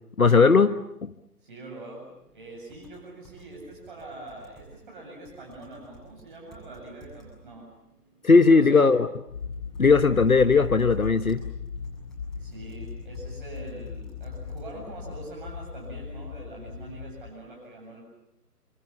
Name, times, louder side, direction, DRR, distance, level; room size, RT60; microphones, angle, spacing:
voice 1, 0.2-1.1 8.2-9.1 9.8-11.4, left 4 dB, 60° left, 10 dB, 1.3 m, -18 dB
voice 2, 1.4-7.7 8.5-8.9 12.4-18.0, right 2 dB, 30° right, -2 dB, 7.9 m, -43 dB
sound 1, 2.1-16.8, right 3 dB, ahead, 7.2 m, -55 dB
sound 2, 9.3-17.3, left 6 dB, 25° left, 3.2 m, -38 dB
28.5 x 26.5 x 7.3 m, 0.83 s
figure-of-eight pair, 150°, 47 cm